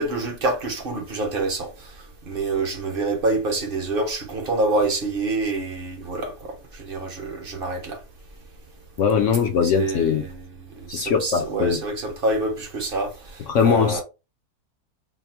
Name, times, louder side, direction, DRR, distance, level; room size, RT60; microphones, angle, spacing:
voice 1, 0.0-1.7 2.3-8.0 9.6-13.4 13.6-14.0, right 2 dB, 45° right, 0.8 m, -26 dB
voice 2, 9.0-10.3 10.9-11.8 13.5-14.0, left 7 dB, 65° left, 0.8 m, -21 dB
4.2 x 2.0 x 4.3 m
omnidirectional pair, 1.7 m